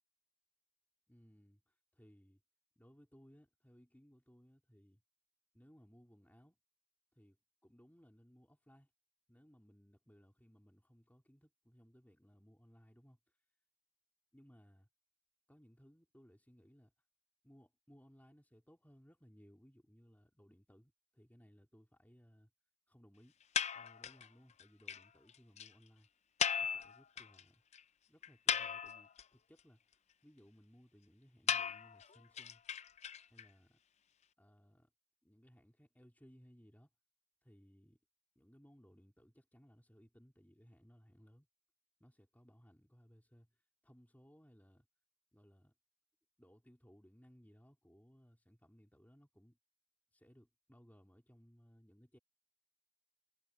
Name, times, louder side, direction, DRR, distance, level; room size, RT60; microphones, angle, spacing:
voice 1, 1.1-2.4 2.8-5.0 5.5-6.6 7.1-7.4 7.6-8.9 9.3-13.4 14.3-14.9 15.5-16.9 17.4-22.5 22.9-23.3 23.7-26.1 26.6-27.6 28.1-32.6 33.3-33.8 34.4-34.9 35.2-36.9 37.4-38.0 38.3-41.5 42.0-44.9 45.3-45.7 46.4-49.6 50.1-52.2, equal, 5° left, 3.0 m, -64 dB
sound 1, 23.5-24.3 24.6-24.7 24.9-25.0 25.3-25.4 25.6-25.7 26.4-27.4 27.7-27.8 28.2-29.2 31.5-33.4, left 8 dB, 30° left, 0.4 m, -37 dB
head